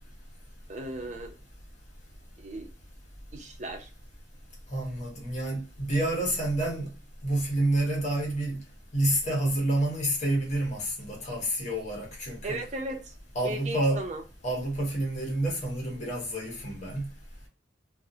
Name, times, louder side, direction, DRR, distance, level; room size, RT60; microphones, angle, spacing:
voice 1, 0.7-1.3 2.4-2.7 3.3-3.9 12.4-13.1 13.4-14.2, right 2 dB, 35° right, 0.5 m, -36 dB
voice 2, 4.7-6.9 7.2-8.6 8.9-12.6 13.3-14.0 14.4-17.1, right 1 dB, 35° left, 1.0 m, -28 dB
2.5 x 2.0 x 2.6 m
head